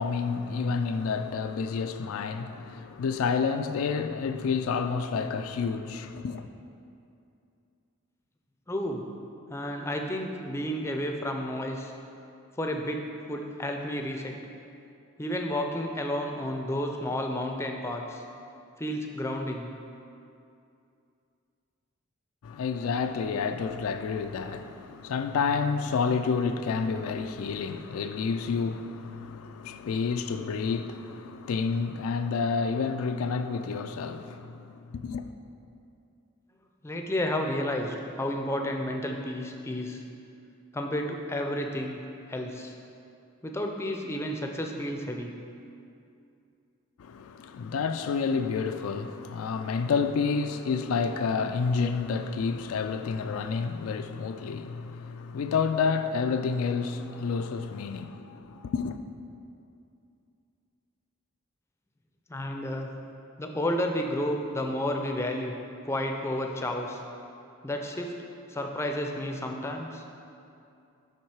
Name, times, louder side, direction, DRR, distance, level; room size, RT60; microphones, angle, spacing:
voice 1, 0.0-6.5 22.4-35.2 47.0-59.0, left 5 dB, 80° left, 0.3 m, -29 dB
voice 2, 8.7-9.0 9.5-11.9 12.6-14.3 15.2-18.2 18.8-19.7 36.8-40.0 40.7-42.0 42.3-42.7 43.4-45.3 62.3-62.9 63.4-65.5 65.8-67.0 67.6-68.1 68.5-70.0, left 1 dB, 10° left, 0.4 m, -31 dB
7.3 x 5.6 x 4.7 m
head